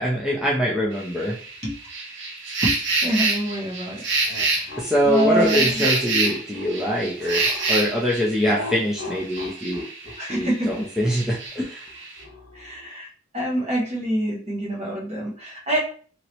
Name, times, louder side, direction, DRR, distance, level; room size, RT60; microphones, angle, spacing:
voice 1, 0.0-1.4 4.8-11.8, equal, 5° right, -5 dB, 0.5 m, -24 dB
sound 1, 0.9-10.4 10.7-12.2, right 3 dB, 70° right, 0.8 m, -27 dB
voice 2, 2.6-4.1 4.5-4.7 5.0-5.9 10.2-10.9 12.5-13.1 13.3-15.8, right 1 dB, 35° right, -3 dB, 1.1 m, -26 dB
sound 2, 4.2-7.8 8.4-12.9, left 2 dB, 90° left, 0.9 m, -38 dB
2.9 x 2.8 x 3.0 m, 0.43 s
head